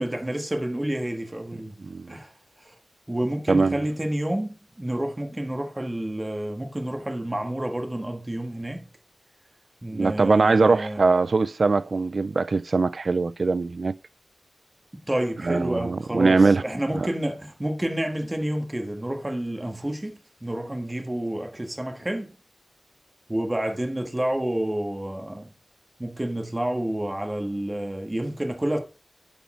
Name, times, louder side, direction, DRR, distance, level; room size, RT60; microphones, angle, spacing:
voice 1, 0.0-1.7 2.1-2.3 2.6-2.7 3.1-8.9 9.8-11.0 15.1-22.3 23.3-25.5 26.0-28.8, right 1 dB, 20° right, 1.5 m, -29 dB
voice 2, 1.8-2.1 3.5-3.9 9.9-14.0 15.4-16.6 17.0-17.1, right 3 dB, 55° right, 0.3 m, -22 dB
8.7 x 5.6 x 4.2 m
wide cardioid pair, 85°, 0 cm